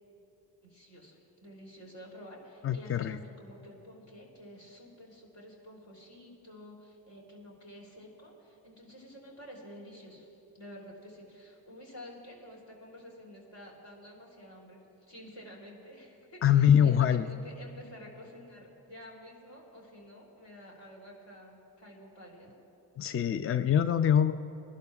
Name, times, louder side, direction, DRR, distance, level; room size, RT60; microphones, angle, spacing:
voice 1, 0.6-22.5, equal, 60° left, -3 dB, 3.4 m, -50 dB
voice 2, 2.6-3.2 16.4-17.3 23.0-24.3, left 9 dB, 30° left, 11 dB, 0.4 m, -24 dB
24.0 x 11.5 x 2.4 m, 2.9 s
hypercardioid pair, 40°, 49 cm